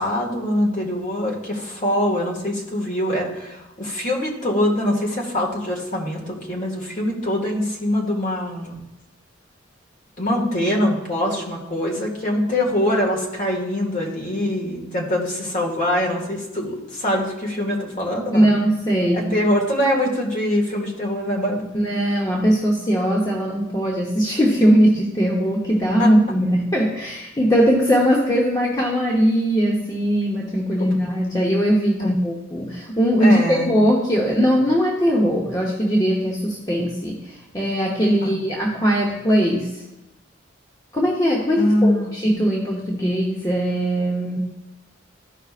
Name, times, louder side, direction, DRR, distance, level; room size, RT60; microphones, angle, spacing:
voice 1, 0.0-8.8 10.2-18.5 19.0-21.6 26.0-26.1 30.8-30.9 32.0-32.1 33.2-33.8 38.2-38.4 41.6-42.1, left 1 dB, 40° left, -2 dB, 1.9 m, -23 dB
voice 2, 18.3-19.3 21.7-39.7 40.9-44.4, equal, 20° left, -3 dB, 0.9 m, -20 dB
13.5 x 5.3 x 2.5 m, 0.99 s
head